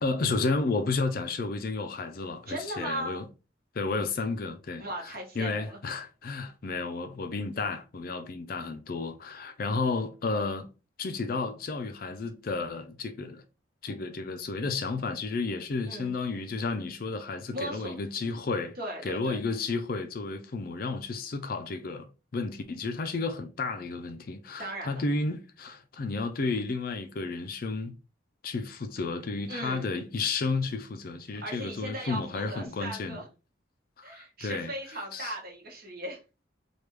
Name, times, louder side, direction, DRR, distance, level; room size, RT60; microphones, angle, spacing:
voice 1, 0.0-3.3 3.7-4.8 5.4-10.7 11.0-13.4 13.8-18.7 19.0-22.1 22.3-28.0 28.4-33.2 34.0-34.7 35.1-35.3, left 3 dB, 45° left, 0.4 m, -32 dB
voice 2, 2.5-3.2 4.8-5.8 15.9-16.1 17.5-18.0 18.8-19.4 24.6-25.0 29.5-30.0 31.3-33.3 34.0-36.2, right 1 dB, 50° right, 1.1 m, -37 dB
3.4 x 2.3 x 3.1 m
head